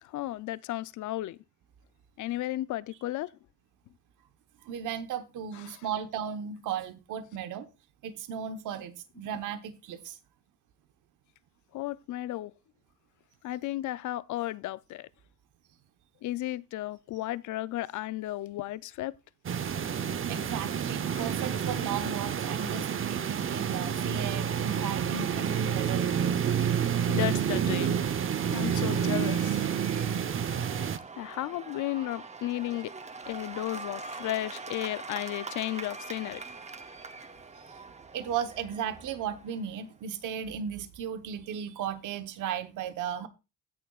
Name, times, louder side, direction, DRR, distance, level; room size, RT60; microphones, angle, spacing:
voice 1, 0.0-1.4 2.2-3.3 5.5-5.8 11.7-12.5 13.4-15.1 16.2-19.1 21.1-21.3 27.1-28.1 28.5-29.8 31.2-32.9 33.3-36.4, left 15 dB, 75° left, 0.5 m, -34 dB
voice 2, 4.6-7.7 8.0-10.2 20.3-26.2 37.6-37.8 38.1-43.3, right 8 dB, 85° right, 1.2 m, -36 dB
sound 1, 19.4-31.0, right 8 dB, 45° right, 0.8 m, -29 dB
Cheering / Applause / Crowd, 25.4-39.9, right 4 dB, 20° right, 1.0 m, -44 dB
16.5 x 6.5 x 2.4 m
cardioid pair, 90°, 30 cm